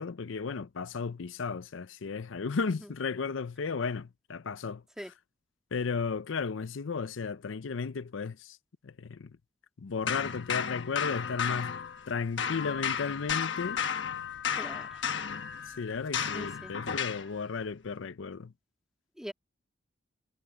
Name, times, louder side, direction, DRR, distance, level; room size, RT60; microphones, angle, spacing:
voice 1, 0.0-4.8 5.7-8.6 8.8-9.3 9.8-11.8 12.1-13.8 15.7-18.5, left 5 dB, 90° left, 0.6 m, -34 dB
sound 1, 10.1-12.1 12.4-17.3, left 7 dB, 70° left, 1.2 m, -33 dB
voice 2, 14.5-15.0 16.3-16.7 19.2-19.3, equal, 5° right, 1.7 m, -42 dB
head